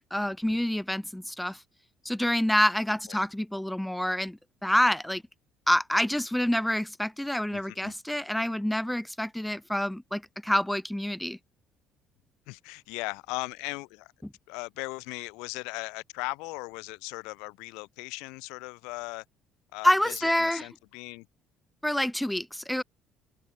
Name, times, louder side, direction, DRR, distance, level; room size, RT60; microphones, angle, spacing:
voice 1, 0.0-1.6 2.0-5.2 5.7-11.4 19.8-20.7 21.8-22.8, left 1 dB, 5° left, 1.4 m, -27 dB
voice 2, 7.5-7.9 12.5-14.1 14.5-19.2 19.7-21.3, left 27 dB, 85° left, 6.3 m, -38 dB
supercardioid pair, 85°, 0 cm